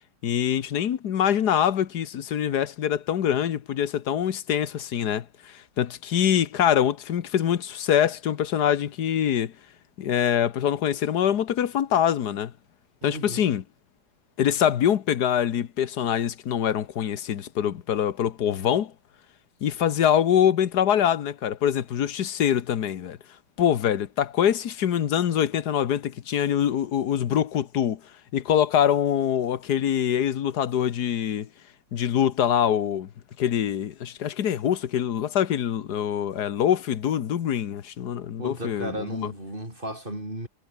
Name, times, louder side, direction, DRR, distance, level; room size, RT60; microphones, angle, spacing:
voice 1, 0.2-9.5 10.0-12.5 13.0-13.6 14.4-18.9 19.6-23.2 23.6-28.0 28.3-31.5 31.9-33.1 33.4-39.3, left 9 dB, 65° left, 1.6 m, -24 dB
voice 2, 13.0-13.4 38.4-40.5, right 1 dB, 25° right, 7.4 m, -34 dB
omnidirectional pair, 2.0 m